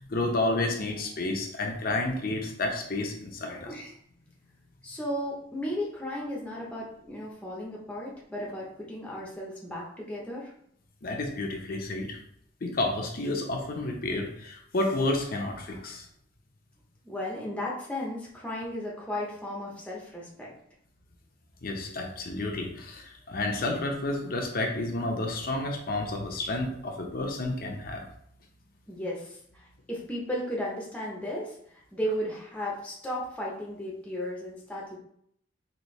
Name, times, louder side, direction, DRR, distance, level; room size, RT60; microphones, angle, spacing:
voice 1, 0.0-3.7 11.0-12.2 12.6-16.1 21.6-28.1, left 2 dB, 50° left, 2 dB, 0.7 m, -30 dB
voice 2, 4.8-10.5 17.0-20.5 28.9-35.0, equal, 5° left, -4 dB, 0.7 m, -35 dB
4.2 x 2.7 x 3.2 m, 0.68 s
head